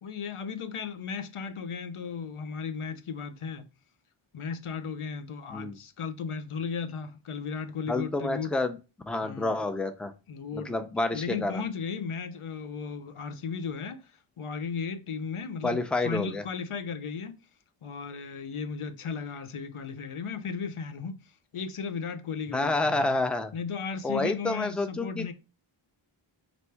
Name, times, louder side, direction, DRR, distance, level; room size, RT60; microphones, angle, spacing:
voice 1, 0.0-3.6 4.3-8.5 9.2-9.6 10.3-10.8 11.1-17.3 17.8-23.2 23.5-25.3, left 5 dB, 85° left, 0.6 m, -35 dB
voice 2, 7.9-8.8 9.1-10.1 10.5-11.6 15.6-16.4 22.5-23.5 24.0-25.3, left 2 dB, ahead, 0.4 m, -29 dB
3.2 x 2.6 x 4.4 m
wide cardioid pair, 40°, 50 cm